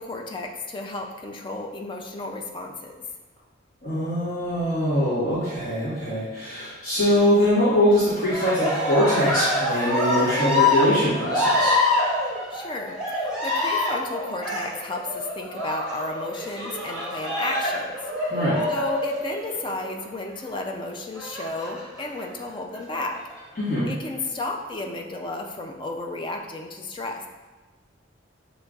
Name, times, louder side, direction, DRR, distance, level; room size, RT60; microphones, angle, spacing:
voice 1, 0.0-3.1 12.5-17.9 18.2-18.4 18.7-23.2 23.9-27.2, left 2 dB, 25° left, 2 dB, 0.4 m, -33 dB
voice 2, 3.8-11.7 18.3-18.6 23.6-23.9, equal, 45° left, -12 dB, 1.4 m, -22 dB
Cheering, 8.2-19.9 21.1-22.0 22.7-23.4, left 2 dB, 5° right, 1.5 m, -26 dB
6.5 x 2.9 x 2.4 m, 1.2 s
head